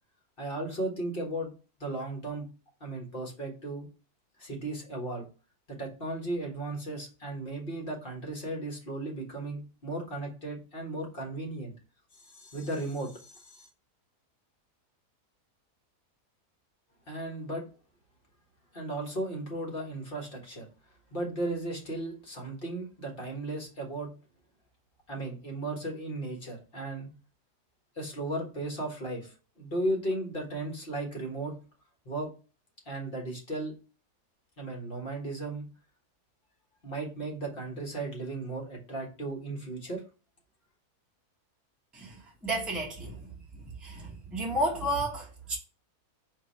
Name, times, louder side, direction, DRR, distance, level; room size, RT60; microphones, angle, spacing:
voice 1, 0.4-1.5 1.8-2.5 2.8-3.9 4.4-5.3 5.7-11.7 12.3-13.7 17.1-17.7 18.7-20.7 21.1-24.2 25.1-27.1 27.9-31.6 32.0-32.3 32.8-33.7 34.6-35.7 36.8-40.0, right 2 dB, 35° left, 1.6 m, -35 dB
voice 2, 41.9-43.3 43.5-45.6, right 1 dB, ahead, 1.0 m, -32 dB
4.4 x 2.9 x 4.1 m
omnidirectional pair, 1.7 m